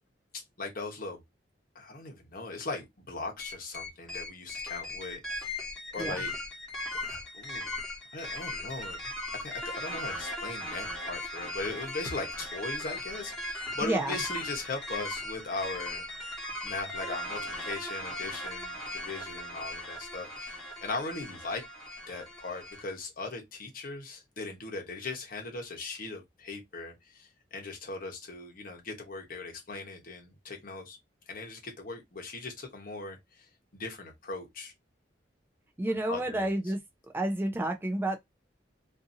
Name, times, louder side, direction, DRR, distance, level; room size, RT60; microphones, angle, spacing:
voice 1, 0.3-1.2 1.7-5.6 5.9-6.4 6.9-7.8 8.1-9.1 9.4-16.1 16.6-21.6 22.1-31.0 31.3-33.5 33.7-34.7 35.9-36.5, left 3 dB, 50° left, 0.9 m, -39 dB
sound 1, 3.4-22.8, left 1 dB, 5° left, 1.2 m, -38 dB
voice 2, 13.8-14.2 35.8-36.8 37.1-38.2, right 1 dB, 10° right, 0.3 m, -30 dB
2.6 x 2.6 x 2.6 m
head